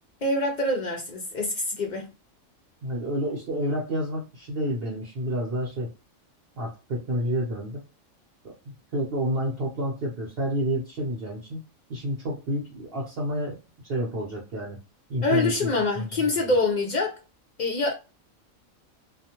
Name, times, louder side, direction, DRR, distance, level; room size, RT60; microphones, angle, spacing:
voice 1, 0.2-2.1 15.2-17.2 17.6-17.9, left 2 dB, 65° left, 0.4 m, -25 dB
voice 2, 2.8-5.9 6.6-7.8 8.9-11.6 11.9-13.6 13.8-14.8 15.1-15.7 16.0-16.5, equal, 50° right, 0.9 m, -29 dB
2.4 x 2.1 x 2.8 m
omnidirectional pair, 1.4 m